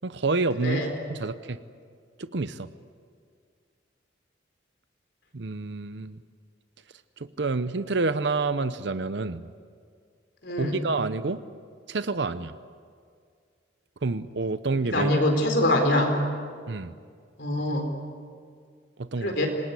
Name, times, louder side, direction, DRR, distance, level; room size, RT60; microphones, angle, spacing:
voice 1, 0.0-1.6 2.2-2.7 5.3-6.2 7.2-9.4 10.6-11.4 11.9-12.5 14.0-15.1 16.7-16.9 19.0-19.3, right 3 dB, 65° right, 12 dB, 0.7 m, -28 dB
voice 2, 10.4-10.9 14.9-16.1 17.4-17.9 19.2-19.5, left 1 dB, 60° left, 4 dB, 4.2 m, -24 dB
26.5 x 20.0 x 8.3 m, 2.1 s
head